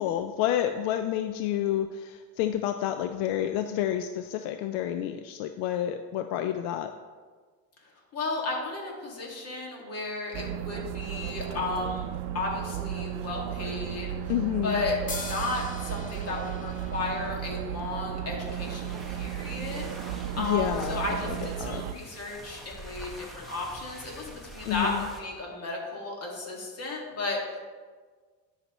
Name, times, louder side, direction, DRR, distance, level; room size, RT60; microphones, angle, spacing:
voice 1, 0.0-6.9 14.3-14.8 20.4-21.0 21.2-21.8 24.6-25.1, left 11 dB, 75° left, 8 dB, 0.5 m, -29 dB
voice 2, 8.1-12.1 12.3-14.3 14.6-27.6, left 3 dB, 40° left, -1 dB, 2.0 m, -34 dB
sound 1, 10.3-21.9, right 10 dB, 75° right, 0.5 m, -35 dB
sound 2, 15.1-18.6, left 4 dB, 20° left, 0.7 m, -42 dB
sound 3, 18.3-25.3, right 1 dB, ahead, 1.1 m, -45 dB
11.0 x 5.9 x 3.0 m, 1.5 s
cardioid pair, 130°, 40 cm